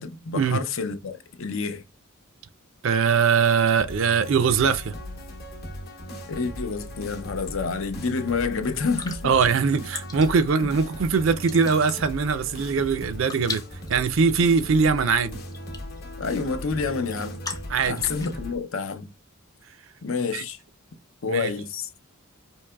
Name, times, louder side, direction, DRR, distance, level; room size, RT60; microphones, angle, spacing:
voice 1, 0.0-1.8 6.3-9.2 10.6-10.7 16.2-17.4 17.9-19.1 20.0-20.6 21.2-21.9, left 4 dB, 60° left, 0.6 m, -28 dB
voice 2, 2.8-4.9 9.2-13.6 13.9-15.4 17.7-18.3 20.3-20.4 21.3-21.5, right 5 dB, 60° right, 0.4 m, -22 dB
sound 1, 3.8-18.6, equal, 45° left, 0.9 m, -38 dB
sound 2, 8.9-18.3, left 4 dB, 15° left, 0.5 m, -40 dB
4.6 x 2.8 x 2.2 m
head